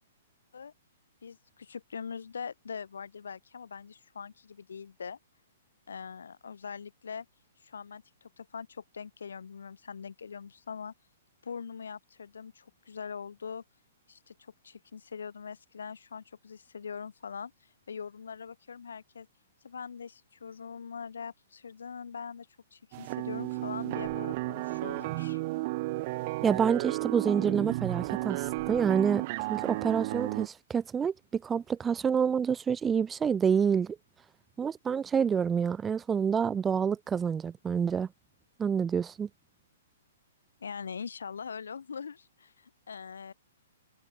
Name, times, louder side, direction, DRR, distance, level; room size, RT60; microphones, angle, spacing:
voice 1, 1.2-5.2 5.9-7.3 7.6-10.9 11.4-13.6 14.1-19.3 19.6-25.4 40.6-43.3, left 6 dB, 90° left, 2.5 m, -42 dB
sound 1, 22.9-30.5, right 21 dB, 45° right, 1.2 m, -33 dB
voice 2, 26.4-29.2 29.5-34.0 34.6-38.1 38.6-39.3, right 7 dB, 15° right, 0.7 m, -28 dB
hypercardioid pair, 145°, 0 cm